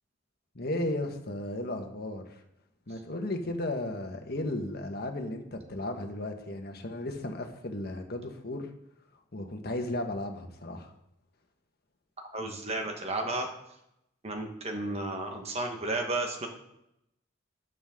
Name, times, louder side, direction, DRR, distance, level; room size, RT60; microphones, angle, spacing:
voice 1, 0.5-2.4 2.9-8.7 9.3-10.9, left 1 dB, 55° left, 4 dB, 1.5 m, -35 dB
voice 2, 12.2-13.5 14.2-16.5, right 2 dB, 35° right, 3 dB, 1.4 m, -33 dB
13.5 x 9.4 x 3.8 m, 0.82 s
head